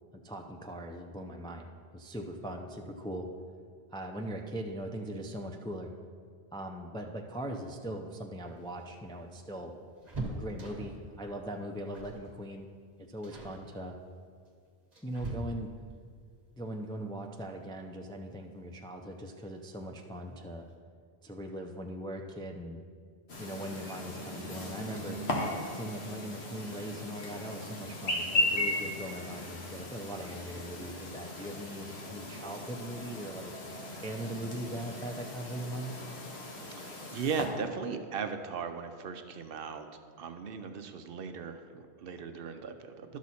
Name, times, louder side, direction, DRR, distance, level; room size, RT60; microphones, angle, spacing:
voice 1, 0.1-1.7 1.9-3.3 3.9-5.9 6.5-9.7 10.3-12.7 13.0-14.0 15.0-15.7 16.6-20.7 21.2-22.8 23.4-25.2 25.7-33.5 34.0-35.9, right 1 dB, 10° left, 2 dB, 0.3 m, -40 dB
sound 1, 8.4-11.1 11.9-12.3 12.6-12.8 13.2-13.6 14.4-15.9 17.7-17.8 18.1-18.2 19.4-19.8 20.2-20.3 20.6-20.8, right 2 dB, 40° right, 1.5 m, -42 dB
Chirp tweet, 23.3-37.5, left 1 dB, 75° left, 1.5 m, -37 dB
voice 2, 37.1-39.9 40.2-43.2, right 5 dB, 65° right, 7 dB, 0.8 m, -37 dB
12.0 x 6.2 x 4.2 m, 2.1 s
omnidirectional pair, 1.1 m